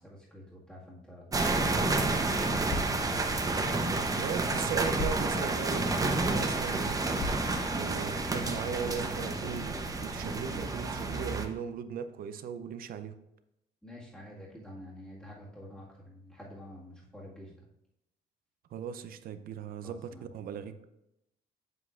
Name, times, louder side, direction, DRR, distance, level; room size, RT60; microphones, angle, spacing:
voice 1, 0.0-3.2 13.8-17.6 19.8-20.3, left 1 dB, 5° left, -6 dB, 1.8 m, -48 dB
sound 1, 1.3-11.5, right 2 dB, 20° right, 0.8 m, -30 dB
sound 2, 1.4-8.4, left 2 dB, 55° left, 1.1 m, -43 dB
voice 2, 4.2-13.1 18.7-20.9, right 7 dB, 60° right, 11 dB, 0.6 m, -38 dB
7.9 x 7.5 x 2.5 m, 0.83 s
cardioid pair, 110°, 17 cm